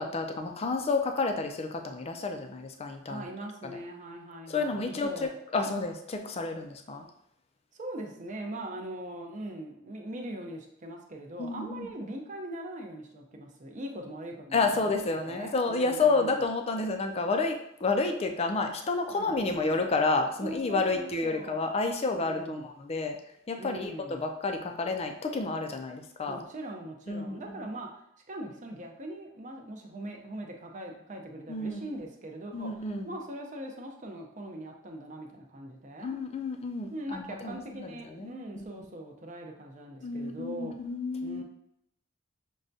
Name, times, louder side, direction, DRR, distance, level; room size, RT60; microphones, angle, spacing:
voice 1, 0.0-3.3 4.5-7.1 11.4-11.9 14.5-23.2 23.5-26.4 27.1-27.4 31.5-31.8 32.5-33.1 36.0-38.6 40.0-41.4, left 3 dB, 30° left, 5 dB, 0.4 m, -30 dB
voice 2, 3.1-5.4 7.7-16.4 19.1-19.8 20.4-21.7 22.2-22.7 23.6-24.2 26.3-28.0 28.3-36.1 36.9-40.7 41.2-41.4, right 1 dB, 40° right, 2 dB, 0.6 m, -41 dB
6.2 x 2.2 x 2.6 m, 0.76 s
head